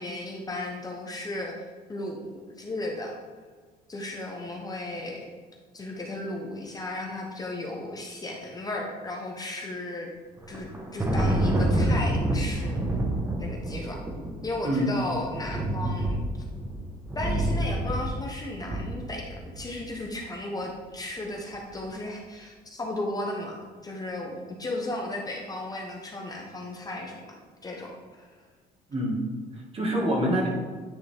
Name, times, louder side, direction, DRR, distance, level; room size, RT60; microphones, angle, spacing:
voice 1, 0.0-1.5 1.9-3.1 3.9-5.3 5.7-10.1 10.5-12.8 13.4-14.0 14.4-16.2 17.1-28.4, left 2 dB, 20° left, 0 dB, 0.9 m, -35 dB
Thunder, 10.4-19.8, right 1 dB, 15° right, 1.0 m, -28 dB
voice 2, 14.6-15.0 28.9-29.2 29.5-30.5, equal, 35° right, -2 dB, 1.8 m, -26 dB
9.3 x 3.8 x 3.4 m, 1.5 s
cardioid pair, 110°, 17 cm